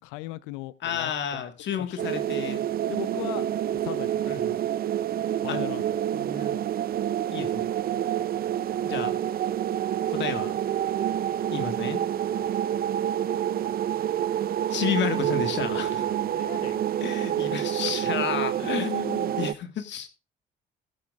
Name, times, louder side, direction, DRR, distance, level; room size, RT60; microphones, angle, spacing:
voice 1, 0.0-1.4 1.7-2.0 2.9-3.5 3.8-4.5 5.4-5.8 12.3-12.5 16.0-16.8, left 19 dB, 75° left, 0.6 m, -38 dB
voice 2, 0.8-2.6 4.3-4.6 5.5-5.6 6.1-6.6 7.3-7.7 8.8-9.1 10.1-10.5 11.5-12.0 14.7-16.0 17.0-20.1, left 8 dB, 60° left, 1.7 m, -31 dB
sound 1, 2.0-19.5, right 10 dB, 45° right, 0.5 m, -28 dB
15.0 x 12.0 x 2.5 m
hypercardioid pair, 50°, 21 cm